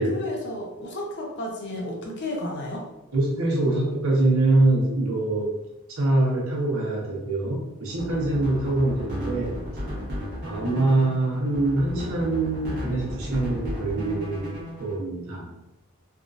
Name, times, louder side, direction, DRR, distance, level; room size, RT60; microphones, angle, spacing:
voice 1, 0.1-2.9, left 1 dB, 55° left, 0 dB, 0.7 m, -32 dB
voice 2, 3.1-5.5 6.0-9.6 10.4-14.5 14.8-15.5, right 2 dB, 85° right, -3 dB, 1.0 m, -24 dB
sound 1, 7.9-15.0, equal, 50° right, 1.2 m, -35 dB
3.6 x 2.5 x 2.5 m, 0.94 s
head